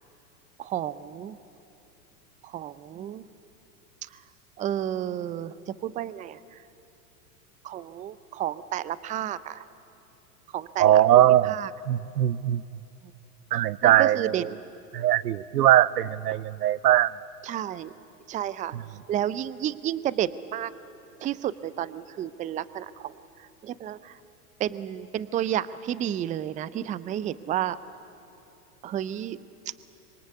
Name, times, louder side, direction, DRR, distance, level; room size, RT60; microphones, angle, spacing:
voice 1, 0.6-1.4 2.4-3.3 4.0-4.2 4.6-6.6 7.6-9.6 10.5-11.7 13.8-14.4 17.4-17.9 18.3-18.7 19.1-20.7 21.2-24.2 24.6-27.8 28.8-29.4, right 11 dB, 15° right, 17 dB, 0.5 m, -31 dB
voice 2, 10.8-11.6 11.9-12.6 13.5-14.5 14.9-17.1, right 12 dB, 85° right, 21 dB, 0.7 m, -20 dB
25.0 x 23.0 x 8.3 m, 2.9 s
hypercardioid pair, 105°, 45 cm